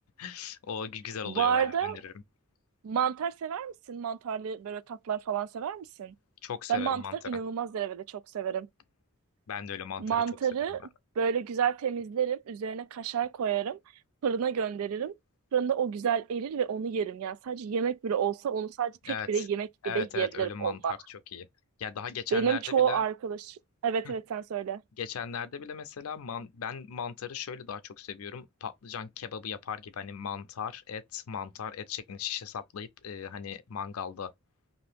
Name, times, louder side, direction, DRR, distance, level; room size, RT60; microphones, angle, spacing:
voice 1, 0.2-2.1 6.4-7.4 9.5-10.2 10.7-10.8 19.1-19.5 19.8-21.5 21.8-23.0 24.0-24.1 25.0-34.3, left 7 dB, 80° left, 0.5 m, -38 dB
voice 2, 1.3-2.0 2.8-6.1 6.7-8.7 10.0-10.8 11.2-13.8 14.2-15.1 15.5-20.9 22.3-24.8, right 7 dB, 80° right, 0.3 m, -30 dB
2.8 x 2.5 x 3.3 m
head